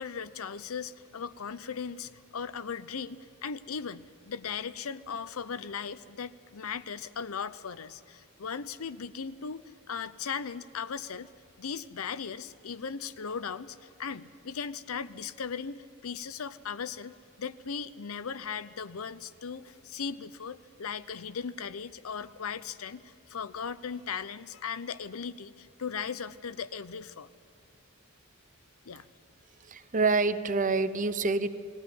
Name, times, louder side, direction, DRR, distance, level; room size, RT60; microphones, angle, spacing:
voice 1, 0.0-11.3 11.6-27.3 28.8-29.0, left 6 dB, 85° left, 14 dB, 0.7 m, -38 dB
voice 2, 29.6-31.5, right 3 dB, 40° right, 12 dB, 0.8 m, -27 dB
21.0 x 15.0 x 9.4 m, 2.2 s
head